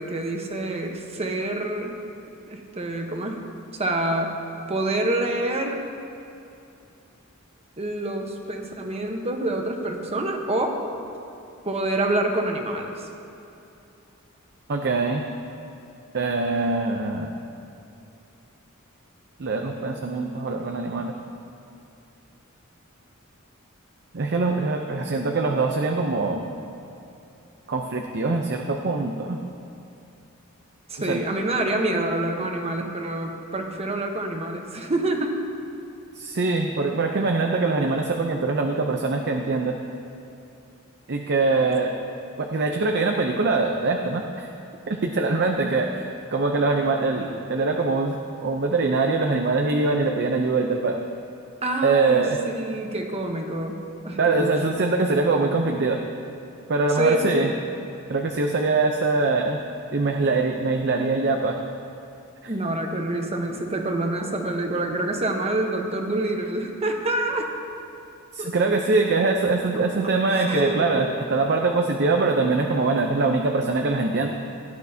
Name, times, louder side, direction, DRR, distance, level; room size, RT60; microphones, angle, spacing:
voice 1, 0.0-2.0 2.5-3.5 3.8-4.4 4.7-5.8 7.8-10.7 11.6-13.1 30.9-35.4 51.6-54.7 57.0-57.5 62.5-67.5 68.4-68.5 70.3-70.9, right 1 dB, 30° right, 3 dB, 1.0 m, -27 dB
voice 2, 14.7-15.2 16.1-17.3 19.4-21.2 24.1-26.4 27.7-29.4 31.1-31.2 36.2-39.8 41.1-42.0 42.4-44.5 44.9-51.0 51.8-52.4 54.2-56.0 56.7-57.5 58.1-59.6 59.9-61.6 62.4-62.5 68.3-74.3, right 3 dB, 55° right, 3 dB, 0.6 m, -23 dB
16.5 x 10.5 x 2.8 m, 2.7 s
head